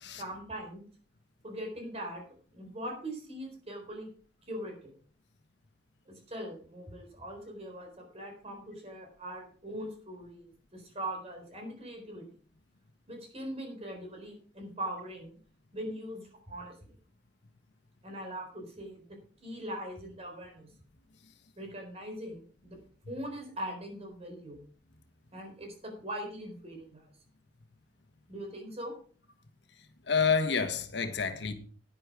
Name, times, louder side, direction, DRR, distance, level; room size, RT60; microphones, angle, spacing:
voice 1, 0.2-0.8 1.4-2.3 2.5-4.1 4.5-4.9 6.1-12.3 13.1-15.4 15.7-16.9 18.0-20.7 21.6-22.8 23.1-24.6 25.3-27.1 28.3-28.9, right 1 dB, 35° right, 4.1 m, -41 dB
voice 2, 30.1-31.5, left 5 dB, 75° left, 1.4 m, -28 dB
11.0 x 10.0 x 4.8 m
head